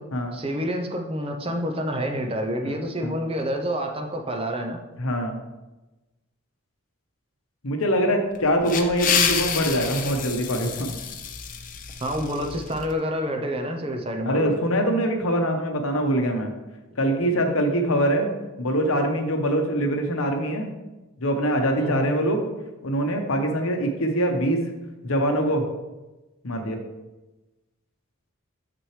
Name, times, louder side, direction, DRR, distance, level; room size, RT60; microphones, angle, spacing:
voice 1, 0.3-4.8 12.0-14.6 21.8-22.1, equal, 25° right, 4 dB, 0.6 m, -28 dB
voice 2, 5.0-5.4 7.6-11.0 14.2-16.5 17.0-20.7 21.2-22.4 22.8-24.7 25.0-25.7 26.4-26.8, equal, 70° left, 4 dB, 1.0 m, -23 dB
sound 1, 8.3-12.9, left 7 dB, 35° left, 0.5 m, -28 dB
7.0 x 6.1 x 3.2 m, 1.1 s
head